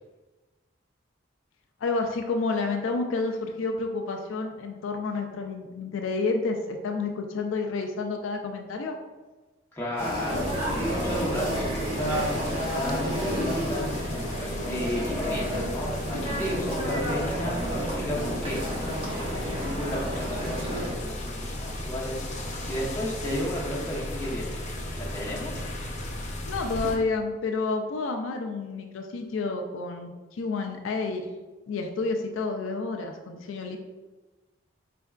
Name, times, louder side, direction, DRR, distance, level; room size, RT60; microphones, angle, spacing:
voice 1, 1.8-9.0 26.5-31.3 31.7-33.8, left 3 dB, 75° left, 4 dB, 0.4 m, -30 dB
voice 2, 9.7-10.5 10.9-14.3 14.6-18.6 19.2-22.2 22.7-24.5 25.0-25.7, equal, 10° left, -6 dB, 0.9 m, -33 dB
sound 1, 10.0-20.9, equal, 30° right, 1.0 m, -31 dB
sound 2, 10.3-26.9, left 1 dB, 35° left, 0.6 m, -35 dB
4.4 x 3.4 x 2.4 m, 1.2 s
head